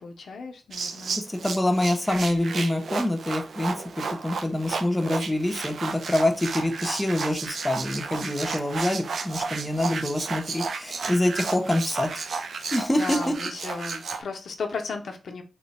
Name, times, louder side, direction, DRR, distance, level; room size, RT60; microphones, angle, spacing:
voice 1, 0.0-1.2 12.6-15.4, left 4 dB, 80° left, 0.5 m, -35 dB
sound 1, 0.7-14.2, right 4 dB, 80° right, 0.4 m, -33 dB
voice 2, 1.2-12.1 12.4-12.5 12.7-13.3, left 1 dB, 15° left, 0.6 m, -26 dB
3.0 x 2.1 x 4.0 m
wide cardioid pair, 125°, 0 cm